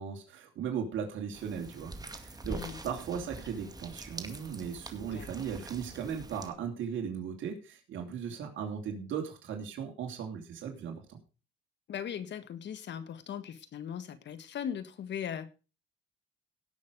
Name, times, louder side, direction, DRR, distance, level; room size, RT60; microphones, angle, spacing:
voice 1, 0.0-11.2, right 7 dB, 75° right, 2 dB, 3.1 m, -37 dB
sound 1, 1.3-6.5, right 2 dB, 20° right, 2.2 m, -45 dB
voice 2, 2.5-2.8 5.1-5.3 11.9-15.5, left 8 dB, 65° left, 12 dB, 1.6 m, -39 dB
17.5 x 6.5 x 5.1 m, 0.33 s
cardioid pair, 90°, 20 cm